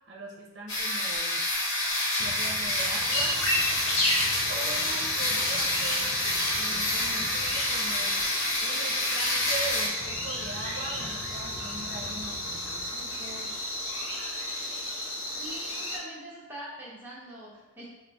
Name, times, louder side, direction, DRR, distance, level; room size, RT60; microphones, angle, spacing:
voice 1, 0.0-1.5 2.1-3.4 4.5-6.2 6.6-8.2 8.6-13.7, right 2 dB, 55° right, -2 dB, 0.6 m, -41 dB
sound 1, 0.7-9.9, left 1 dB, 55° left, 1.0 m, -28 dB
sound 2, 2.2-14.1, left 2 dB, 30° left, 0.3 m, -47 dB
sound 3, 3.1-16.0, left 1 dB, 90° left, 0.9 m, -33 dB
voice 2, 15.4-17.9, right 1 dB, 10° right, -6 dB, 0.8 m, -43 dB
3.8 x 2.0 x 3.4 m, 1.1 s
head